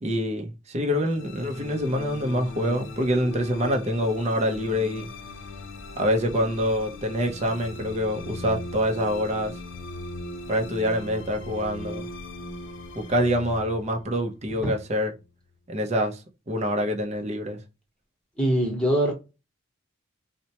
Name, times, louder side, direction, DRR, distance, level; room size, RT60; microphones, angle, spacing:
voice 1, 0.0-5.1 6.0-9.5 10.5-12.1 13.0-15.1 15.7-16.2 16.5-17.6, equal, 35° right, 0.6 m, -26 dB
sound 1, 0.9-15.3, left 2 dB, 60° left, 0.6 m, -39 dB
voice 2, 18.4-19.1, right 1 dB, 5° left, 1.1 m, -23 dB
4.2 x 2.1 x 2.8 m
head